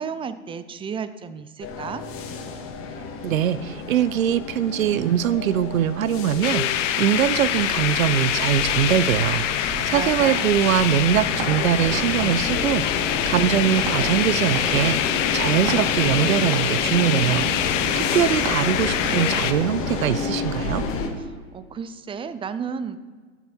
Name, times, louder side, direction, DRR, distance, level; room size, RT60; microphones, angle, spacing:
voice 1, 0.0-2.0 9.9-10.5 21.3-23.0, right 6 dB, 15° right, 13 dB, 0.5 m, -33 dB
sound 1, 1.6-21.1, left 4 dB, 35° left, 2.0 m, -30 dB
voice 2, 3.2-20.8, right 10 dB, 85° right, 16 dB, 0.7 m, -22 dB
sound 2, 6.4-19.5, left 11 dB, 65° left, 1.0 m, -25 dB
sound 3, 10.6-19.4, right 4 dB, 60° right, 2.6 m, -36 dB
14.0 x 8.5 x 4.4 m, 1.5 s
hypercardioid pair, 105°, 40 cm